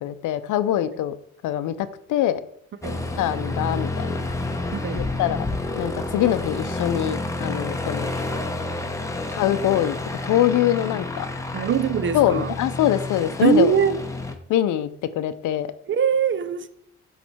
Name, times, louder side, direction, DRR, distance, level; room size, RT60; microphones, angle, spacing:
voice 1, 0.0-1.1 1.4-2.4 3.2-4.1 4.9-5.5 5.7-8.1 9.3-10.0 10.2-11.3 12.1-13.7 14.5-14.9 15.1-15.7, left 12 dB, 80° left, 0.6 m, -23 dB
Aircraft, 2.8-14.3, left 2 dB, 10° left, 0.8 m, -29 dB
voice 2, 4.7-5.1 11.5-12.5 13.4-14.0 15.9-16.7, right 7 dB, 40° right, 0.6 m, -22 dB
7.2 x 3.3 x 4.3 m
cardioid pair, 90°, 30 cm